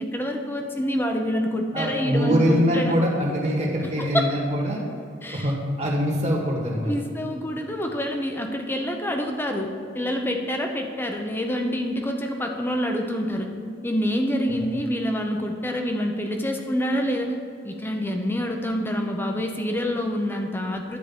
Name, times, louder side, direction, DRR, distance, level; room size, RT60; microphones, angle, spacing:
voice 1, 0.0-3.0 4.0-4.3 5.2-5.5 6.8-13.5 13.8-17.3 17.6-21.0, equal, 10° left, 3 dB, 0.8 m, -27 dB
voice 2, 1.7-4.8 5.3-6.9 14.5-14.6, equal, 35° right, -3 dB, 1.9 m, -23 dB
10.5 x 4.9 x 7.2 m, 2.4 s
head